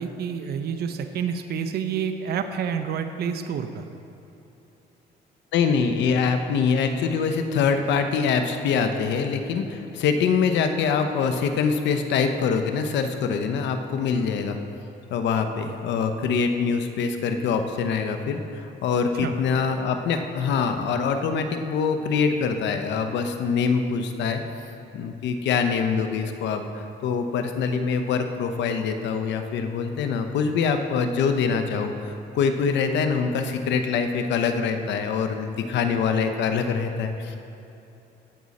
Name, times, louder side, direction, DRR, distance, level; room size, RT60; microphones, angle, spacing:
voice 1, 0.0-3.9 19.1-19.3, right 7 dB, 60° right, 7 dB, 0.7 m, -28 dB
voice 2, 5.5-14.6 15.1-24.4 24.9-37.4, left 5 dB, 75° left, 7 dB, 0.9 m, -24 dB
16.5 x 6.3 x 4.2 m, 2.9 s
cardioid pair, 95°, 19 cm